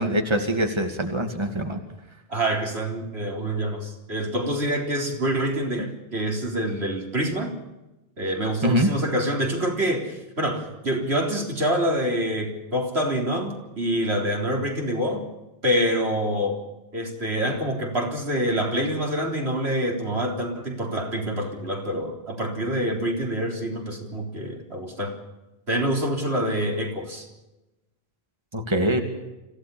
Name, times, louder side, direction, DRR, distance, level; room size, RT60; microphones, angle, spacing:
voice 1, 0.0-1.8 8.6-8.9 28.5-29.0, equal, 25° right, 4 dB, 2.4 m, -23 dB
voice 2, 2.3-7.5 8.2-15.2 15.6-16.6 16.9-25.2 25.7-27.3, equal, 80° right, 1 dB, 4.3 m, -26 dB
26.0 x 16.5 x 7.1 m, 1.0 s
omnidirectional pair, 1.1 m